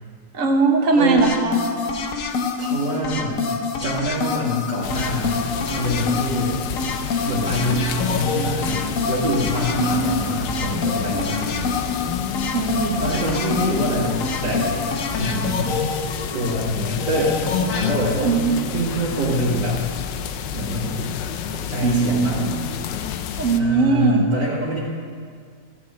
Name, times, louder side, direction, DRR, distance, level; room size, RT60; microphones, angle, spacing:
voice 1, 0.3-1.6 9.8-10.1 11.1-11.2 12.5-13.0 18.2-18.6 21.8-22.6 23.4-24.2, right 4 dB, 50° right, 3 dB, 1.5 m, -20 dB
voice 2, 0.9-1.2 2.6-3.5 3.8-5.4 5.7-6.6 7.2-11.7 13.0-14.2 14.4-14.8 15.1-15.7 16.3-17.4 17.7-18.4 18.7-19.8 20.5-21.1 21.5-22.5 23.6-24.8, equal, 80° right, -9 dB, 2.7 m, -25 dB
sound 1, 1.2-17.9, left 4 dB, 55° left, 1.1 m, -26 dB
sound 2, 4.8-23.6, left 9 dB, 90° left, 1.3 m, -30 dB
14.0 x 5.3 x 8.6 m, 2.1 s
omnidirectional pair, 1.9 m